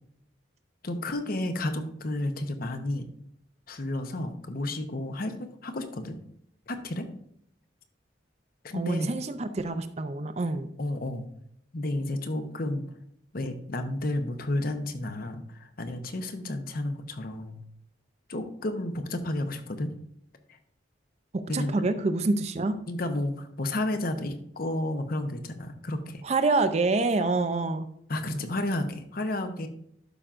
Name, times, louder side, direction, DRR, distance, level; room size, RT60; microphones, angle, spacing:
voice 1, 0.8-3.1 3.7-6.2 6.7-7.1 8.6-9.1 10.8-11.3 11.7-12.8 13.3-17.6 18.3-19.9 20.5-20.6 21.5-21.8 22.9-26.2 28.1-29.7, left 1 dB, 50° left, 7 dB, 0.9 m, -31 dB
voice 2, 8.7-10.7 21.3-22.8 26.2-27.9, right 3 dB, 35° right, 9 dB, 0.5 m, -26 dB
12.0 x 5.6 x 2.5 m, 0.71 s
head